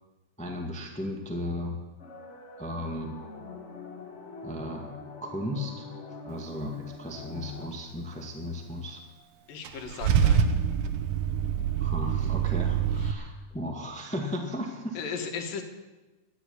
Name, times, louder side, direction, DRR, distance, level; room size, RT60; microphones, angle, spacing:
voice 1, 0.4-1.8 2.6-3.2 4.4-5.9 6.2-9.0 11.8-15.0, left 1 dB, 5° left, 3 dB, 0.9 m, -35 dB
sound 1, 2.0-7.7, left 3 dB, 35° left, 1.2 m, -43 dB
voice 2, 9.5-10.4 13.0-13.4 14.9-15.6, left 6 dB, 85° left, 4 dB, 3.4 m, -36 dB
Car / Engine starting / Idling, 9.6-13.1, right 8 dB, 70° right, 2.1 m, -25 dB
13.0 x 10.0 x 9.4 m, 1.1 s
omnidirectional pair, 3.9 m